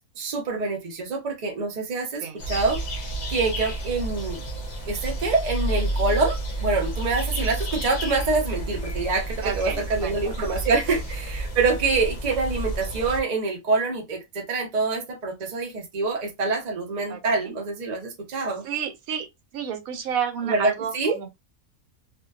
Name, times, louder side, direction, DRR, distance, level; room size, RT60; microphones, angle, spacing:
voice 1, 0.2-4.4 4.9-18.7 20.4-21.2, right 3 dB, 45° right, 0.6 m, -26 dB
sound 1, 2.4-13.2, right 1 dB, 50° left, 0.5 m, -30 dB
voice 2, 9.4-10.4 10.9-11.0 17.1-17.5 18.6-19.3 19.5-21.4, right 8 dB, 80° right, 1.1 m, -31 dB
2.6 x 2.1 x 2.3 m
omnidirectional pair, 1.5 m